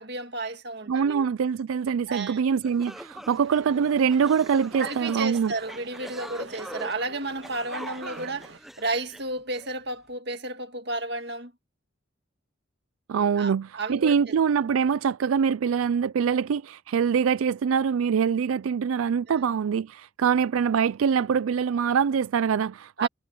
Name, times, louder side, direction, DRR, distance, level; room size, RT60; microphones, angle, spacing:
voice 1, 0.0-1.3 2.1-2.4 4.8-11.5 13.4-14.1 19.3-19.4 23.0-23.1, right 2 dB, 55° right, 2.0 m, -32 dB
voice 2, 0.9-5.5 13.1-23.1, right 7 dB, 90° right, 0.4 m, -24 dB
sound 1, 2.2-2.3 2.6-9.7, equal, ahead, 0.7 m, -43 dB
sound 2, 3.3-8.6, right 4 dB, 70° right, 1.6 m, -46 dB
head